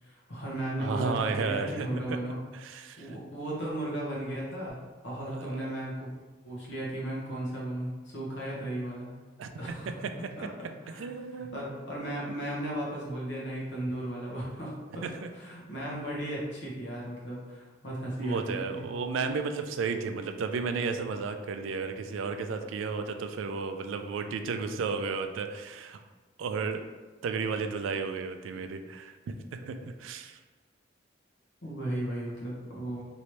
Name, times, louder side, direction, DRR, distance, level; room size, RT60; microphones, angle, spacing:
voice 1, 0.0-2.4 3.0-4.8 5.0-6.1 6.4-9.1 9.5-9.9 10.4-10.5 10.8-15.1 15.3-18.8 31.6-33.0, right 1 dB, 65° left, -5 dB, 1.1 m, -35 dB
voice 2, 0.8-2.2 2.5-3.2 5.3-5.6 9.4-9.5 11.0-11.6 15.0-15.1 18.2-26.0 26.4-26.8 27.2-30.4, right 4 dB, 85° right, 7 dB, 0.3 m, -33 dB
3.1 x 2.8 x 3.1 m, 1.3 s
head